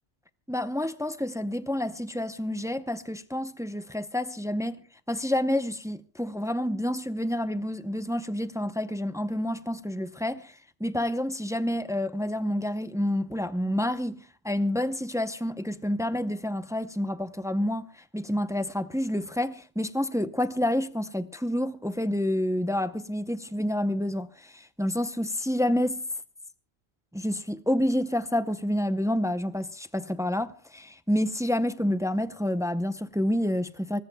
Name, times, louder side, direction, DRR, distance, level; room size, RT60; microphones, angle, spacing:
voice 1, 0.5-4.8 5.1-26.0 27.1-34.0, left 1 dB, 5° right, 0.4 m, -29 dB
25.0 x 19.0 x 2.2 m
omnidirectional pair, 1.1 m